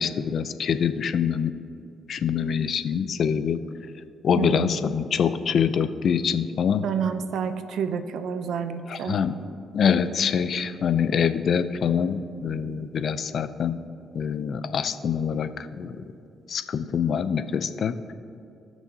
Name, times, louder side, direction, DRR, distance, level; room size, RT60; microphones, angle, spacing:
voice 1, 0.0-1.5 2.1-3.6 4.2-6.9 8.9-9.4 9.7-13.8 14.1-15.9 16.5-17.9, left 7 dB, 60° left, 12 dB, 0.5 m, -25 dB
voice 2, 4.4-4.7 6.8-9.2, right 7 dB, 75° right, 9 dB, 0.7 m, -29 dB
18.0 x 6.2 x 2.8 m, 2.5 s
supercardioid pair, 65°, 0 cm